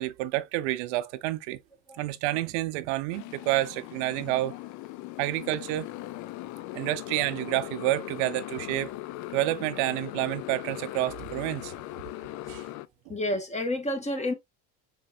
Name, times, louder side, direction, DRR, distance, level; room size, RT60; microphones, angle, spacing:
voice 1, 0.0-1.6 2.0-4.6 5.2-5.9 6.7-8.9 9.3-11.7 12.5-12.7, right 16 dB, 90° right, 0.6 m, -29 dB
Motorcycle, 3.1-12.9, left 16 dB, 60° left, 0.5 m, -39 dB
voice 2, 12.2-12.5 13.1-14.3, left 1 dB, 20° left, 1.5 m, -30 dB
4.6 x 4.2 x 2.6 m
cardioid pair, 115°, 34 cm